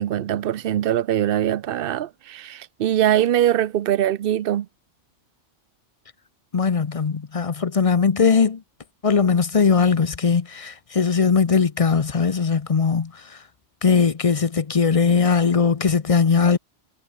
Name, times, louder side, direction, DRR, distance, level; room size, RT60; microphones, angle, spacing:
voice 1, 0.0-4.7, right 11 dB, 55° right, 0.7 m, -22 dB
voice 2, 6.5-8.6 9.0-13.1 13.8-16.6, left 5 dB, 35° left, 0.7 m, -19 dB
omnidirectional pair, 1.3 m